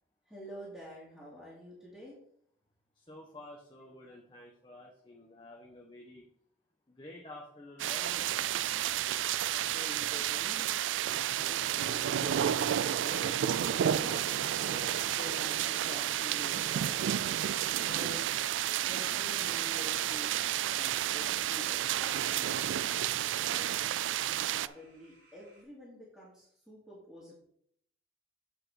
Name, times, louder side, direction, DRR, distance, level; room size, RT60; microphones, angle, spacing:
voice 1, 0.3-2.2 9.6-13.3 13.9-16.9 17.7-18.2 18.8-23.1 23.4-23.7 24.6-27.4, equal, 5° right, -7 dB, 2.3 m, -48 dB
voice 2, 2.9-6.2 6.9-8.4, left 1 dB, 25° left, -1 dB, 1.1 m, -50 dB
sound 1, 7.8-24.7, right 11 dB, 90° right, 0.3 m, -31 dB
sound 2, 8.3-25.6, right 3 dB, 50° right, 3.0 m, -62 dB
8.1 x 5.7 x 4.8 m, 0.68 s
head